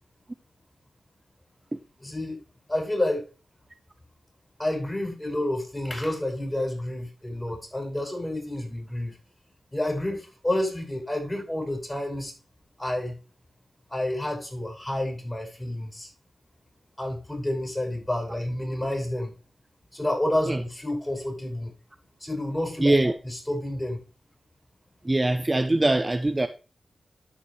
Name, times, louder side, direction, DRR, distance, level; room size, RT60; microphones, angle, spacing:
voice 1, 2.0-2.4 2.7-3.2 4.6-9.2 9.7-12.3 12.8-13.2 13.9-16.1 17.0-19.3 19.9-21.7 22.2-24.0, left 1 dB, 20° left, 5.4 m, -29 dB
voice 2, 22.8-23.1 25.0-26.5, right 2 dB, 25° right, 0.5 m, -22 dB
13.0 x 5.3 x 3.1 m
cardioid pair, 45°, 0 cm